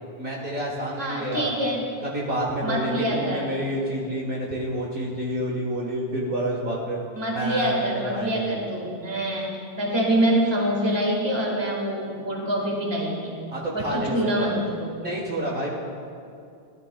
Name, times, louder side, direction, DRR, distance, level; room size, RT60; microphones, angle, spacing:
voice 1, 0.2-1.5 2.0-7.0 7.3-8.5 13.5-14.6 15.0-15.7, right 1 dB, 55° right, -3 dB, 1.6 m, -29 dB
voice 2, 1.0-1.8 2.6-3.4 7.1-13.4 13.7-15.0, right 1 dB, 25° right, -2 dB, 1.8 m, -25 dB
16.5 x 12.0 x 2.3 m, 2.4 s
omnidirectional pair, 1.2 m